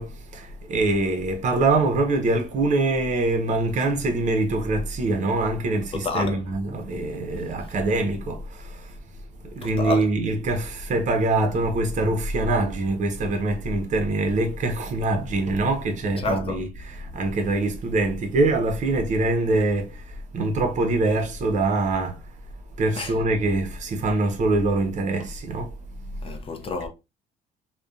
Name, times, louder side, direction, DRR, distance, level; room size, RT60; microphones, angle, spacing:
voice 1, 0.0-9.0 9.4-22.2 22.8-25.8, right 2 dB, 45° right, 0.6 m, -24 dB
voice 2, 5.9-6.4 9.6-10.1 16.2-16.6 23.0-23.1 26.2-26.9, left 3 dB, 35° left, 0.5 m, -28 dB
2.6 x 2.1 x 2.3 m
cardioid pair, 110°, 17 cm